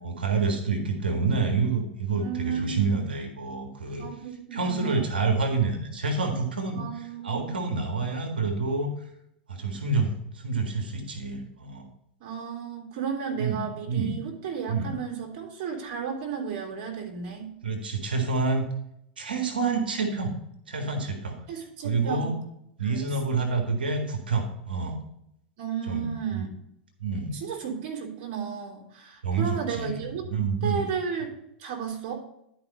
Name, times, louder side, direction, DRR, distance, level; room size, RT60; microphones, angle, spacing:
voice 1, 0.0-4.1 4.5-8.9 9.5-11.9 13.4-13.6 13.9-14.1 14.7-14.9 17.6-18.6 19.2-20.3 20.7-21.4 21.8-22.4 22.8-25.0 25.9-26.4 27.0-27.4 29.2-30.8, right 4 dB, 85° right, 4 dB, 1.6 m, -28 dB
voice 2, 2.1-3.0 3.9-5.1 6.7-7.6 12.2-17.5 21.5-22.3 22.8-23.1 25.6-26.5 27.3-30.2 30.6-31.3 31.6-32.1, right 7 dB, 55° right, -1 dB, 3.2 m, -33 dB
11.5 x 5.1 x 4.0 m, 0.77 s
hypercardioid pair, 100°, 5 cm